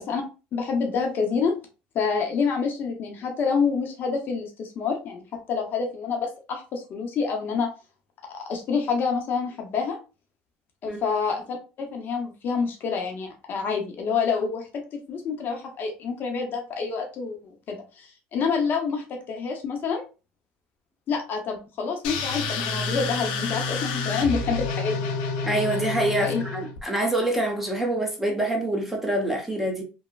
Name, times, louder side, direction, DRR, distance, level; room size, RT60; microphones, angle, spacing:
voice 1, 0.5-1.5 1.9-7.7 8.3-10.0 10.8-20.0 21.1-25.1 26.2-26.4, left 5 dB, 50° left, 2 dB, 0.7 m, -27 dB
sound 1, 22.0-26.8, left 4 dB, 90° left, 0.6 m, -29 dB
voice 2, 25.4-29.8, right 1 dB, 5° right, 1 dB, 0.8 m, -26 dB
3.1 x 2.1 x 2.3 m, 0.32 s
supercardioid pair, 95°, 4 cm